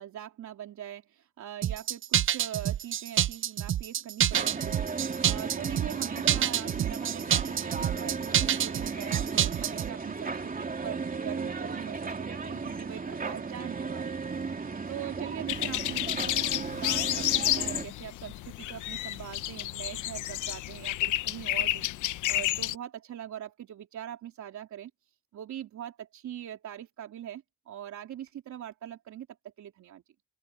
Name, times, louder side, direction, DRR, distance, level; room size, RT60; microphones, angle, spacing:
voice 1, 0.0-14.6 14.9-24.9 25.3-30.0, right 11 dB, 70° right, 3.5 m, -42 dB
sound 1, 1.6-9.9, right 11 dB, 45° right, 0.5 m, -27 dB
sound 2, 4.3-17.9, right 4 dB, 30° right, 2.8 m, -35 dB
sound 3, 15.5-22.7, left 14 dB, 85° left, 1.0 m, -31 dB
open air
cardioid pair, 90°, 30 cm